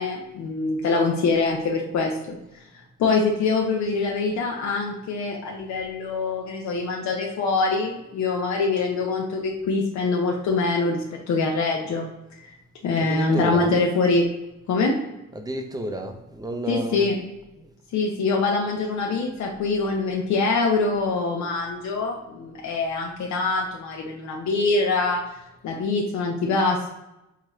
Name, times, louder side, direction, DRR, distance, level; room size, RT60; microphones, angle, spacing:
voice 1, 0.0-2.6 3.0-12.1 12.4-12.5 12.8-14.3 14.7-15.0 16.7-17.2 17.9-25.2 25.6-26.9, left 3 dB, 70° left, 0 dB, 0.7 m, -24 dB
voice 2, 13.0-13.7 15.3-17.1 17.6-17.7, right 1 dB, 15° right, 5 dB, 0.6 m, -31 dB
4.7 x 2.3 x 3.1 m, 0.93 s
cardioid pair, 90°, 30 cm